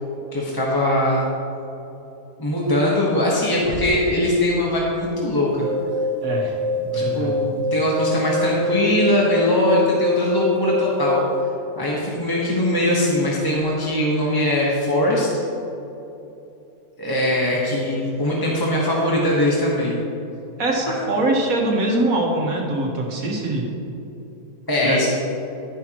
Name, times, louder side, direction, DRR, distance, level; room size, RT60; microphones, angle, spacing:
voice 1, 0.3-1.2 2.4-5.7 6.9-11.2 11.8-15.3 17.0-20.0 20.9-21.0 24.7-25.1, left 1 dB, 15° left, -5 dB, 1.2 m, -21 dB
sound 1, 3.1-4.2 4.5-4.6 5.5-6.2 8.0-8.3 8.6-8.9 9.2-9.3 10.1-10.2 12.0-14.1, left 1 dB, 85° left, 3.2 m, -40 dB
sound 2, 5.5-11.5, left 1 dB, 80° right, 1.4 m, -25 dB
voice 2, 6.2-6.6 6.8-7.3 20.6-23.7 24.8-25.1, right 2 dB, 60° right, -1 dB, 1.9 m, -23 dB
11.5 x 10.5 x 3.0 m, 2.9 s
omnidirectional pair, 1.7 m